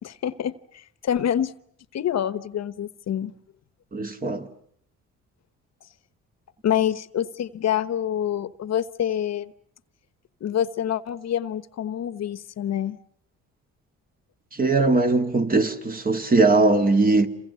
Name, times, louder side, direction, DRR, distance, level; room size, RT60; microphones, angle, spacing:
voice 1, 0.0-1.5 1.9-3.3 6.6-9.5 10.4-13.0, left 10 dB, 60° left, 1.1 m, -26 dB
voice 2, 3.9-4.5 14.6-17.3, right 3 dB, 30° right, 2.4 m, -20 dB
27.5 x 27.5 x 7.0 m
cardioid pair, 90°, 30 cm